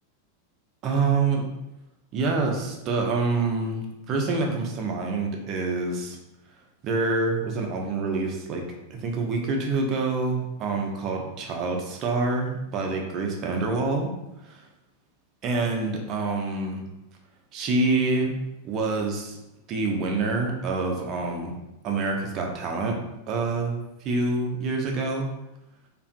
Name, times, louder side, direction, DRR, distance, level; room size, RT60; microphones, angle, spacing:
voice 1, 0.8-1.4 2.1-6.2 6.8-8.6 8.9-14.1 15.4-16.8 17.5-18.4 18.6-19.4 19.7-21.5 21.8-23.0 23.3-23.7 24.0-25.3, right 3 dB, 35° right, 1 dB, 0.5 m, -26 dB
2.6 x 2.4 x 2.4 m, 0.95 s
figure-of-eight pair, 90°, 0 cm